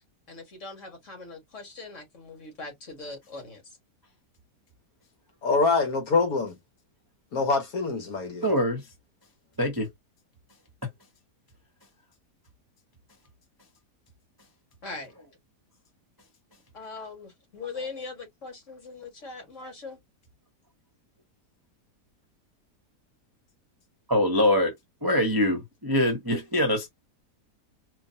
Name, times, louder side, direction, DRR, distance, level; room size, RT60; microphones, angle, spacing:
voice 1, 0.3-3.8 14.8-15.1 16.7-20.0, left 3 dB, 50° left, 2.1 m, -41 dB
voice 2, 5.4-6.6 7.3-8.5, left 4 dB, 65° left, 1.3 m, -25 dB
voice 3, 8.4-8.8 9.6-9.9 24.1-24.7 25.0-26.9, left 1 dB, 20° right, 0.6 m, -23 dB
4.4 x 2.4 x 2.7 m
omnidirectional pair, 1.8 m